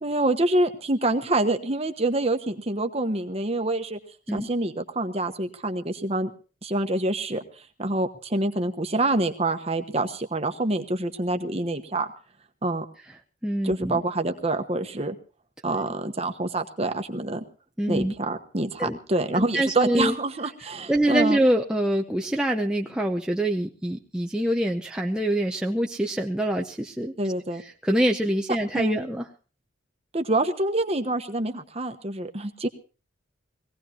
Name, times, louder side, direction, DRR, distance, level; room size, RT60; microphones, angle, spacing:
voice 1, 0.0-4.0 4.3-6.3 6.6-7.4 7.8-12.1 12.6-12.8 13.6-15.2 15.6-17.4 17.9-21.4 27.2-27.6 28.7-29.0 30.1-32.7, right 2 dB, 30° right, 6 dB, 1.1 m, -26 dB
voice 2, 13.4-14.0 17.8-18.1 18.8-19.0 19.3-20.1 20.9-27.1 27.6-29.3, right 1 dB, 5° right, 1 dB, 0.7 m, -25 dB
22.0 x 17.0 x 2.9 m, 0.35 s
head